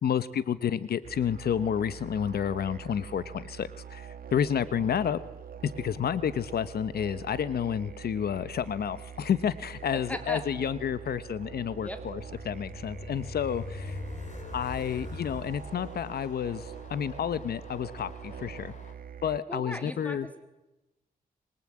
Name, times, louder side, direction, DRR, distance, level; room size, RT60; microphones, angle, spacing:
voice 1, 0.0-5.2 5.6-14.0 14.5-18.7 19.2-20.3, left 8 dB, 85° left, 15 dB, 1.0 m, -30 dB
sound 1, 1.0-19.4, right 8 dB, 65° right, 1.9 m, -44 dB
voice 2, 9.9-10.4 11.7-12.0 13.8-14.2 19.5-20.4, equal, 10° left, 7 dB, 2.3 m, -39 dB
Train, 10.9-18.9, left 3 dB, 50° left, 3.7 m, -44 dB
26.0 x 23.0 x 8.7 m, 1.0 s
wide cardioid pair, 140°, 16 cm